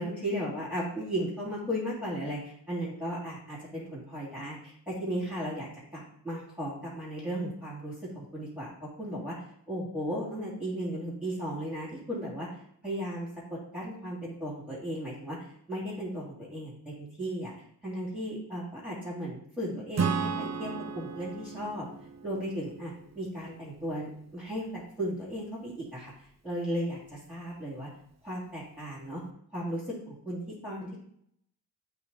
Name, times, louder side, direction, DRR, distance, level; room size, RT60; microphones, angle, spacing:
voice 1, 0.0-9.4 9.7-12.5 12.8-17.5 17.8-21.9 22.2-26.1 26.4-27.9 28.2-29.2 29.5-31.0, equal, 5° right, -8 dB, 2.8 m, -36 dB
Acoustic guitar / Strum, 20.0-23.5, right 5 dB, 40° right, 0.6 m, -34 dB
8.4 x 3.4 x 4.1 m, 0.67 s
cardioid pair, 60°, 43 cm